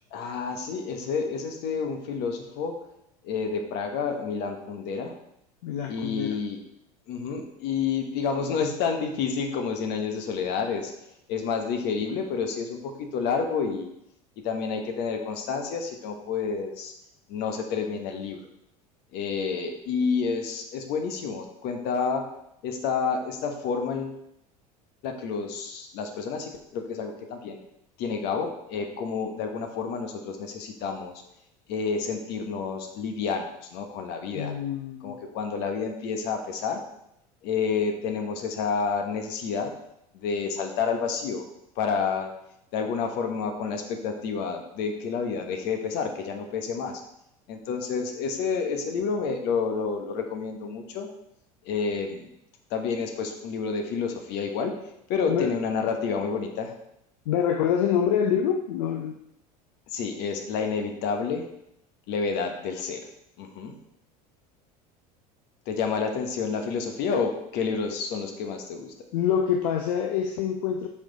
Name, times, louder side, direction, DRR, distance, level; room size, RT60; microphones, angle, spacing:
voice 1, 0.1-2.8 3.2-5.1 5.9-6.6 7.1-10.9 11.3-13.9 14.4-16.9 17.3-18.4 19.1-22.3 22.6-24.2 25.0-27.6 28.0-31.1 31.7-34.5 35.0-36.8 37.4-39.7 40.1-41.4 41.8-42.3 42.7-47.0 47.5-51.1 51.7-52.3 52.7-54.7 55.1-56.7 59.9-61.5 62.1-63.1 63.4-63.8 65.7-68.9, left 5 dB, 60° left, 5 dB, 1.2 m, -29 dB
voice 2, 5.6-6.4 34.3-35.2 55.3-55.5 57.3-59.2 69.1-70.9, left 8 dB, 75° left, 4 dB, 0.6 m, -26 dB
5.8 x 4.9 x 4.0 m, 0.79 s
hypercardioid pair, 90°, 20 cm